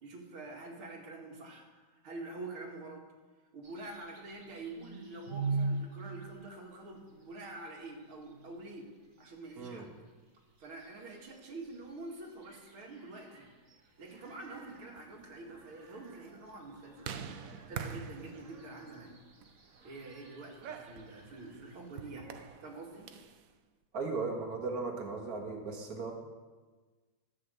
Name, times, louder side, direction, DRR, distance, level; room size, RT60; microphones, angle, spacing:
voice 1, 0.0-3.0 3.5-8.9 9.2-9.9 10.6-13.5 14.0-17.1 17.7-19.2 19.8-23.1, right 2 dB, 85° right, 0 dB, 2.9 m, -46 dB
sound 1, 3.6-22.5, right 3 dB, 30° right, 1.5 m, -45 dB
sound 2, 14.4-23.5, right 7 dB, 60° right, 0.9 m, -47 dB
voice 2, 23.9-26.1, right 4 dB, 45° right, 2 dB, 2.0 m, -37 dB
13.5 x 6.2 x 7.9 m, 1.4 s
omnidirectional pair, 2.2 m